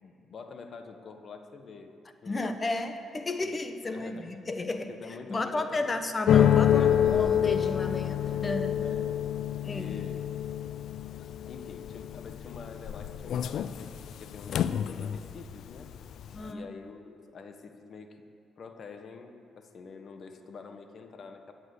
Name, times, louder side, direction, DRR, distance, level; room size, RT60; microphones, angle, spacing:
voice 1, 0.0-2.5 3.4-4.3 4.9-6.1 8.8-9.4 9.7-10.2 10.6-10.7 11.5-15.9 16.4-18.2 18.6-21.5, left 4 dB, 50° left, 6 dB, 1.3 m, -46 dB
voice 2, 2.3-4.9 5.3-8.8 9.6-10.0 16.3-16.7, left 2 dB, 30° left, 7 dB, 1.1 m, -33 dB
sound 1, 6.3-15.5 15.8-16.4, left 10 dB, 70° left, 0.5 m, -27 dB
14.0 x 9.6 x 8.3 m, 2.5 s
cardioid pair, 90°, 0 cm